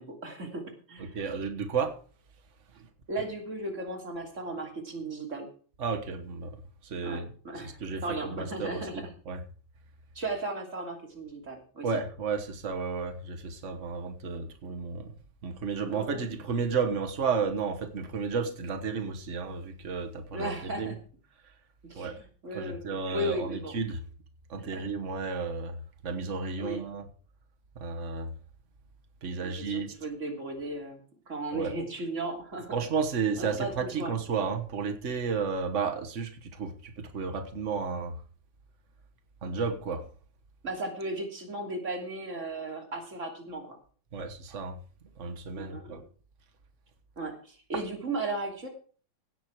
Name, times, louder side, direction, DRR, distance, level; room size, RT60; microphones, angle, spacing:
voice 1, 0.0-1.2 3.1-5.5 7.0-9.1 10.1-11.9 15.9-16.3 20.3-21.0 21.8-22.8 23.1-23.7 24.7-24.8 26.6-26.8 29.4-32.8 33.3-34.1 40.6-43.8 45.6-46.0 47.2-48.7, right 2 dB, 25° right, 2.9 m, -36 dB
voice 2, 1.0-2.0 2.7-2.9 5.8-6.6 6.8-7.3 7.6-9.4 11.8-15.1 15.4-20.9 22.0-22.2 22.5-24.0 24.5-25.8 26.0-27.1 27.7-28.3 29.2-29.9 31.5-31.7 32.7-38.2 39.4-40.1 44.1-44.8 45.2-46.0, right 5 dB, 85° right, 0.6 m, -32 dB
16.5 x 8.4 x 4.7 m
omnidirectional pair, 3.5 m